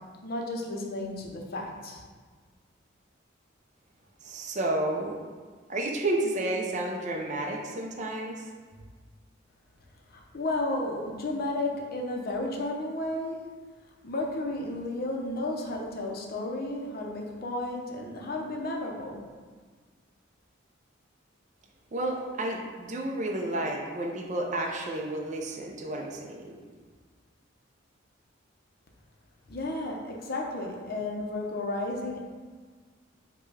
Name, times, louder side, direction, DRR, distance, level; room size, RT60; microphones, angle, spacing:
voice 1, 0.2-2.0 10.1-13.4 14.0-19.2 29.5-32.2, left 2 dB, 50° left, 1 dB, 0.6 m, -33 dB
voice 2, 4.2-5.2 5.7-8.5 21.9-26.6, right 1 dB, 40° right, 0 dB, 0.5 m, -31 dB
5.0 x 2.2 x 4.7 m, 1.5 s
head